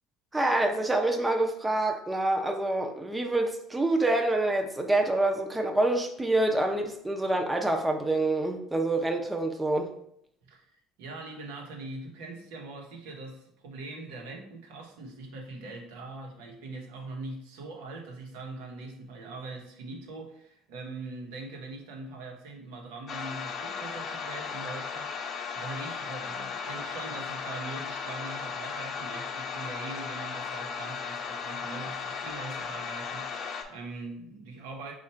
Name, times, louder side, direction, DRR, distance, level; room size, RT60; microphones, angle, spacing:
voice 1, 0.3-9.9, right 2 dB, 10° right, 3 dB, 0.6 m, -26 dB
voice 2, 10.4-34.9, right 3 dB, 90° right, 0 dB, 1.0 m, -42 dB
sound 1, 23.1-33.6, left 5 dB, 45° left, 0.8 m, -36 dB
4.2 x 2.5 x 4.3 m, 0.71 s
supercardioid pair, 105°, 0 cm